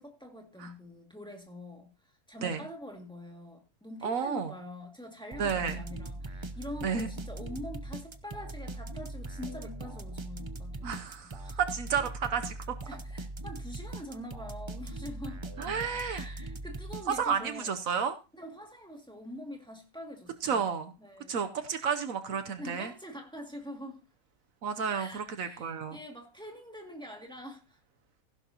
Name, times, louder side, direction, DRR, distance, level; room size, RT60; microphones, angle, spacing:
voice 1, 0.0-1.9 2.3-11.6 12.9-15.4 16.1-17.7 18.3-20.7 21.0-21.5 22.6-24.0 24.9-27.8, left 1 dB, 5° left, 2.2 m, -44 dB
voice 2, 4.0-4.5 5.4-5.8 6.8-7.1 10.8-12.6 15.6-16.2 17.1-18.2 20.4-20.9 21.3-22.9 24.6-26.0, right 6 dB, 70° right, 1.2 m, -31 dB
sound 1, 5.3-17.5, right 2 dB, 30° right, 0.6 m, -41 dB
15.5 x 11.0 x 2.9 m
omnidirectional pair, 1.5 m